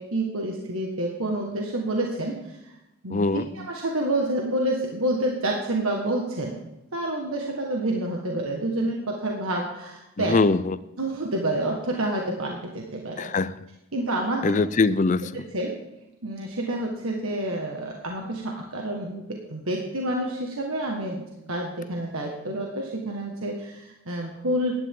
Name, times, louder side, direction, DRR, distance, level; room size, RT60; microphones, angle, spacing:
voice 1, 0.0-2.6 3.0-6.6 6.9-10.4 11.0-13.3 13.9-14.7 15.5-15.8 16.2-24.7, right 1 dB, 80° right, 0 dB, 1.7 m, -28 dB
voice 2, 3.1-3.4 10.2-10.8 13.2-13.5 14.4-15.3, left 3 dB, 35° left, 16 dB, 0.5 m, -22 dB
15.0 x 11.0 x 3.8 m, 0.93 s
head